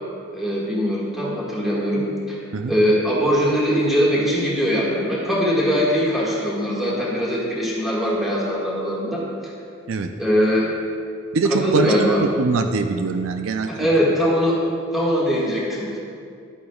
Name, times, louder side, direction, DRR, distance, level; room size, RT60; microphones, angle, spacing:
voice 1, 0.3-2.4 2.7-9.2 10.2-10.7 11.5-12.2 13.8-14.6 14.9-16.0, equal, ahead, -7 dB, 1.7 m, -21 dB
voice 2, 11.3-14.1, right 4 dB, 80° right, 6 dB, 0.5 m, -23 dB
11.0 x 8.6 x 2.3 m, 2.3 s
head